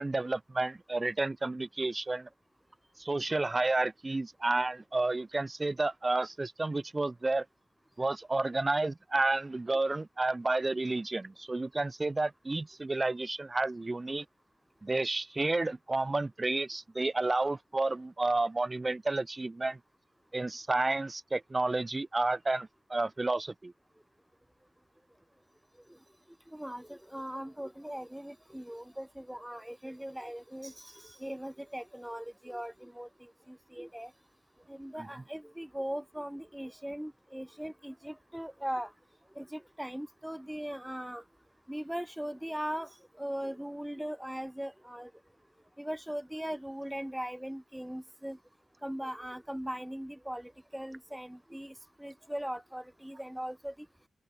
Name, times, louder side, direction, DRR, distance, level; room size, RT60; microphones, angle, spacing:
voice 1, 0.0-2.3 3.0-7.5 8.0-14.2 14.8-19.8 20.3-23.7 35.0-35.1, right 2 dB, 30° right, 1.0 m, -31 dB
voice 2, 26.5-34.1 34.7-38.9 39.3-41.2 41.7-45.1 45.8-48.4 48.8-53.9, equal, 5° right, 1.4 m, -39 dB
open air
cardioid pair, 50°, 0 cm